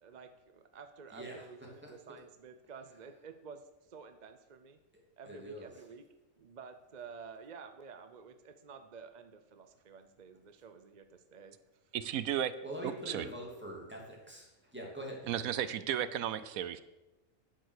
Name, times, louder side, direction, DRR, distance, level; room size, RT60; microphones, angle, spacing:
voice 1, 0.0-4.8 5.2-6.0 6.4-11.6 11.8-11.9, right 5 dB, 45° right, 8 dB, 0.6 m, -51 dB
voice 2, 1.1-1.5 1.8-1.9 5.2-5.7 12.6-15.3, right 1 dB, 5° right, -3 dB, 2.7 m, -44 dB
voice 3, 11.9-12.5 12.8-13.3 15.3-16.8, right 10 dB, 75° right, 14 dB, 1.1 m, -34 dB
10.0 x 8.0 x 6.5 m, 1.0 s
omnidirectional pair, 1.5 m